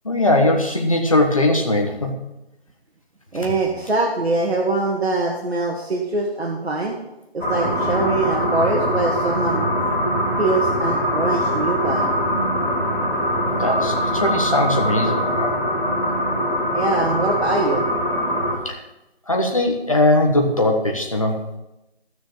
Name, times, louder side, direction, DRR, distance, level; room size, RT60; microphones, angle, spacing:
voice 1, 0.0-2.1 13.5-15.5 18.5-18.8 19.3-21.4, left 1 dB, 30° left, 1 dB, 1.4 m, -20 dB
voice 2, 3.3-7.0 7.3-9.7 10.4-12.1 16.7-17.9, right 2 dB, 75° right, -1 dB, 2.2 m, -23 dB
sound 1, 7.4-18.5, equal, ahead, 4.1 m, -22 dB
15.5 x 6.3 x 7.2 m, 0.93 s
figure-of-eight pair, 175°, 32 cm